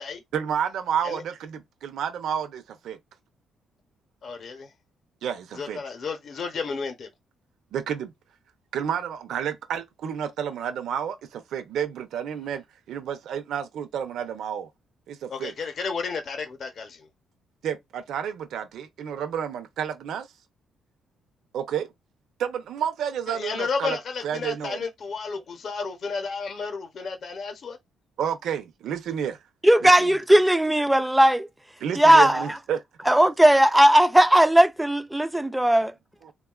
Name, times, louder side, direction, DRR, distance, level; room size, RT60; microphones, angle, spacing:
voice 1, 0.3-3.0 5.2-5.8 7.7-8.1 8.7-14.7 15.1-15.5 17.6-20.3 21.5-21.9 22.4-24.0 24.2-24.8 28.2-29.4 29.8-30.1 31.8-32.8 36.2-36.3, right 8 dB, 65° right, 0.6 m, -30 dB
voice 2, 4.2-4.7 5.5-7.1 15.3-17.1 23.3-27.8, left 5 dB, 45° left, 0.7 m, -32 dB
voice 3, 29.6-31.5 32.0-32.5 33.1-35.9, right 1 dB, 5° right, 0.3 m, -17 dB
3.6 x 2.2 x 2.3 m
cardioid pair, 155°, 0 cm